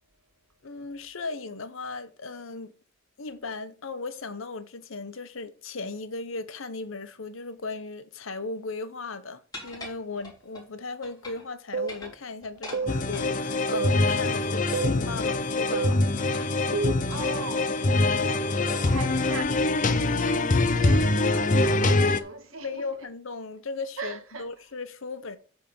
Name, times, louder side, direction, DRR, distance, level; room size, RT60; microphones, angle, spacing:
voice 1, 0.6-2.7 3.2-16.6 22.6-25.4, left 3 dB, 70° left, 0.9 m, -37 dB
sound 1, 9.5-10.7 11.0-11.5 11.8-13.3 14.1-15.1 15.7-17.9 18.7-19.0 19.4-19.5 20.1-20.4 20.7-20.9 21.4-21.7, left 1 dB, 20° left, 3.4 m, -45 dB
sound 2, 11.7-12.0 12.7-13.0 13.7-14.0 14.7-15.0 15.7-16.0 16.7-17.0, right 4 dB, 50° right, 0.5 m, -29 dB
sound 3, 12.9-22.2, left 2 dB, 35° left, 0.6 m, -24 dB
voice 2, 17.0-17.9 18.1-23.1 24.0-24.5, right 3 dB, 75° right, 1.5 m, -40 dB
9.1 x 3.5 x 6.9 m
head